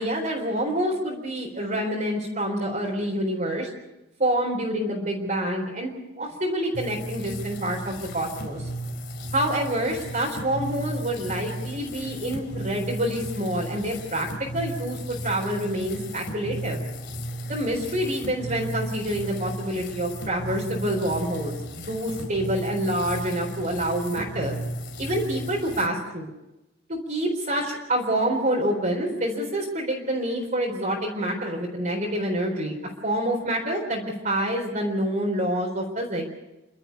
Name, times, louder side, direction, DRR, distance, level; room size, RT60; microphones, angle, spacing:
voice 1, 0.0-3.7 4.2-8.7 9.3-16.8 17.4-24.6 25.0-26.3 26.9-32.8 33.0-36.3, right 1 dB, 40° right, -1 dB, 4.1 m, -27 dB
sound 1, 6.7-25.9, right 1 dB, 55° left, 2.5 m, -35 dB
29.5 x 12.5 x 8.2 m, 0.97 s
head